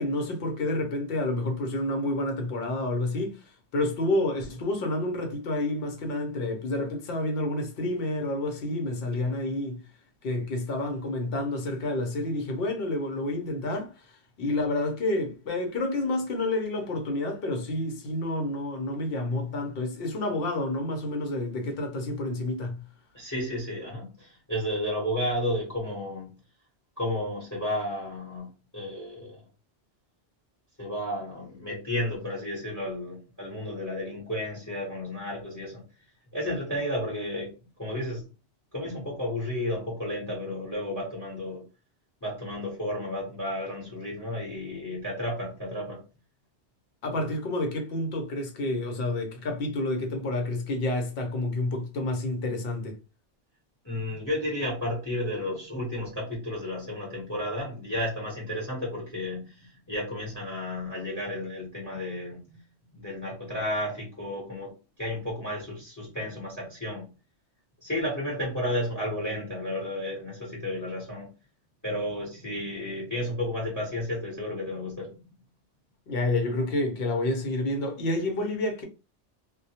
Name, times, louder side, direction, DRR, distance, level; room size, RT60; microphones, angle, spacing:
voice 1, 0.0-3.4 3.7-9.8 10.2-14.1 14.4-22.8 47.0-53.0 76.1-78.8, left 2 dB, 60° left, 0.8 m, -29 dB
voice 2, 23.1-26.3 27.0-29.4 30.8-35.8 36.3-37.5 37.8-38.2 38.7-41.6 42.2-46.0 53.8-62.6 63.0-64.7 65.0-67.1 67.8-71.3 71.8-75.2, left 1 dB, 15° left, 0.9 m, -32 dB
2.2 x 2.1 x 2.7 m
omnidirectional pair, 1.2 m